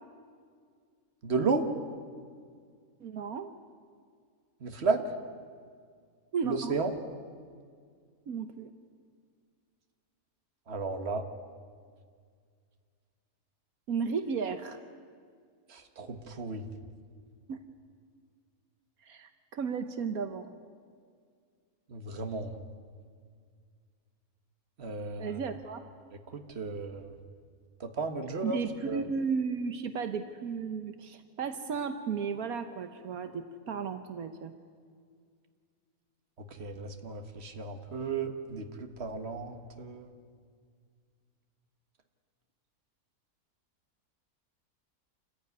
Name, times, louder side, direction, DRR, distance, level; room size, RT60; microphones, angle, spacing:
voice 1, 1.2-1.7 4.6-5.0 6.4-6.9 10.7-11.3 15.7-16.7 21.9-22.6 24.8-25.4 26.3-27.1 27.8-28.6 28.8-29.0 36.4-40.1, right 4 dB, 45° right, 6 dB, 1.8 m, -33 dB
voice 2, 3.0-3.5 6.3-6.7 8.3-8.7 13.9-14.8 17.5-17.6 19.0-20.6 25.2-25.8 28.4-34.5, right 5 dB, 75° right, 8 dB, 1.5 m, -34 dB
27.5 x 15.0 x 9.5 m, 2.1 s
omnidirectional pair, 1.5 m